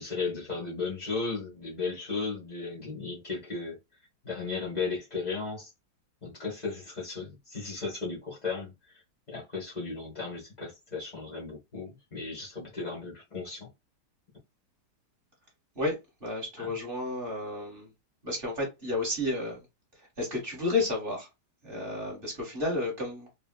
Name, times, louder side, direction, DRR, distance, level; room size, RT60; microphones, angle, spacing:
voice 1, 0.0-3.8 4.2-5.7 6.2-9.0 9.3-13.7 16.6-16.7, left 4 dB, 40° left, 0.6 m, -35 dB
voice 2, 15.7-17.9 18.2-19.6 20.0-21.3 21.6-23.3, left 2 dB, 30° right, 1.2 m, -32 dB
3.5 x 2.2 x 2.2 m
omnidirectional pair, 2.3 m